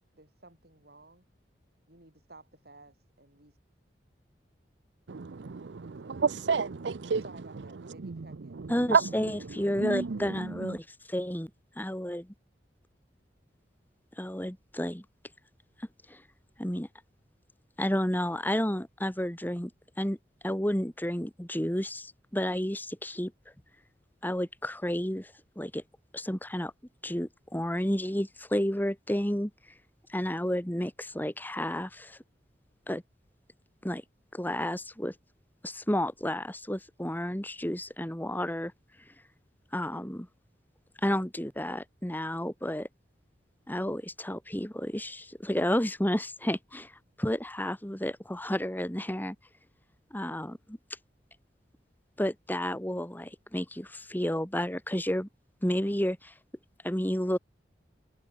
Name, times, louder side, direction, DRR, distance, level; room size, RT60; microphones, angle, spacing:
voice 1, 0.1-1.2 1.9-3.6 7.2-10.1, right 2 dB, 60° right, 7.7 m, -55 dB
voice 2, 5.1-7.2 8.0-8.1 8.9-9.0 9.8-10.1, right 5 dB, 85° right, 0.6 m, -28 dB
voice 3, 8.7-11.5 11.8-12.3 14.2-15.0 16.1-16.2 16.6-16.9 17.8-19.7 20.0-20.2 20.4-23.3 24.2-25.8 26.1-26.7 27.0-29.5 30.1-32.2 32.9-33.0 33.8-34.0 34.3-35.1 35.6-38.7 39.7-40.3 41.0-42.9 43.7-49.4 50.1-50.8 52.2-55.3 55.6-56.3 56.8-57.4, equal, 10° left, 2.4 m, -31 dB
head